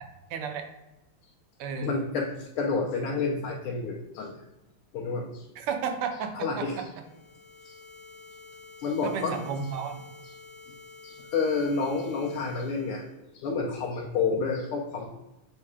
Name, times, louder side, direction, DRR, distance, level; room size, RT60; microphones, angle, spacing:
voice 1, 0.3-0.7 1.6-2.0 5.6-6.8 9.0-10.0, right 6 dB, 85° right, 6 dB, 1.7 m, -32 dB
voice 2, 1.8-4.4 4.9-5.4 6.3-6.8 7.6-7.8 8.8-9.4 11.0-15.1, left 4 dB, 90° left, -1 dB, 1.6 m, -29 dB
sound 1, 7.0-13.1, left 3 dB, 65° left, 0.7 m, -50 dB
7.2 x 2.8 x 4.7 m, 0.98 s
omnidirectional pair, 2.4 m